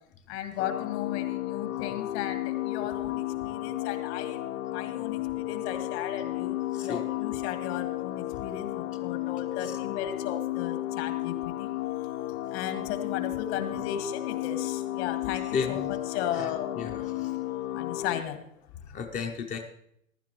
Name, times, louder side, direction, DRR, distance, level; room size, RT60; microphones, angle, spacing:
voice 1, 0.3-11.7 12.5-16.8 17.7-18.4 19.1-19.2, left 10 dB, 50° left, 7 dB, 1.7 m, -36 dB
sound 1, 0.6-18.2, left 15 dB, 70° left, 0.6 m, -33 dB
voice 2, 6.7-7.0 9.6-9.8 13.5-13.9 15.5-16.0 16.3-17.4 18.9-19.6, left 6 dB, 20° left, 4 dB, 0.7 m, -34 dB
15.0 x 11.5 x 3.0 m, 0.76 s
hypercardioid pair, 115°, 41 cm